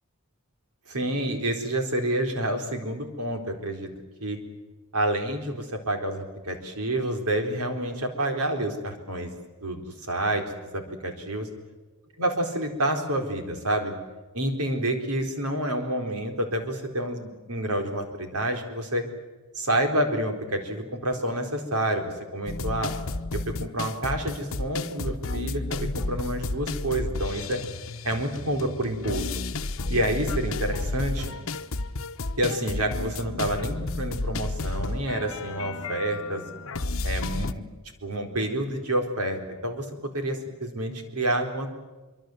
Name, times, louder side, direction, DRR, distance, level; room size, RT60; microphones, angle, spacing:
voice 1, 0.9-3.9 4.2-4.4 4.9-9.3 9.6-11.5 12.2-13.9 14.3-19.0 19.6-22.9 23.3-27.6 28.0-29.3 29.9-31.4 32.4-36.4 37.0-37.6 38.0-41.7, right 1 dB, 85° right, 5 dB, 4.2 m, -28 dB
sound 1, 22.5-37.5, left 2 dB, 65° left, 1.1 m, -32 dB
25.0 x 24.0 x 7.9 m, 1.2 s
head